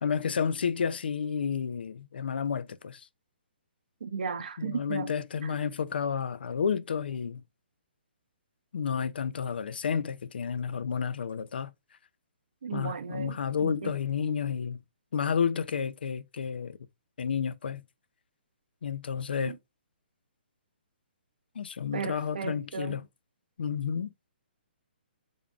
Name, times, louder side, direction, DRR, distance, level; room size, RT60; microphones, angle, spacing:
voice 1, 0.0-3.1 4.6-7.4 8.7-11.7 12.7-14.8 15.1-16.8 17.2-17.8 18.8-19.6 21.6-23.0 23.6-24.1, left 7 dB, 65° left, 0.4 m, -31 dB
voice 2, 4.0-5.1 5.4-5.6 12.6-13.9 19.4-19.6 21.9-23.0, right 6 dB, 55° right, 0.5 m, -35 dB
3.5 x 2.3 x 3.7 m
hypercardioid pair, 175°, 6 cm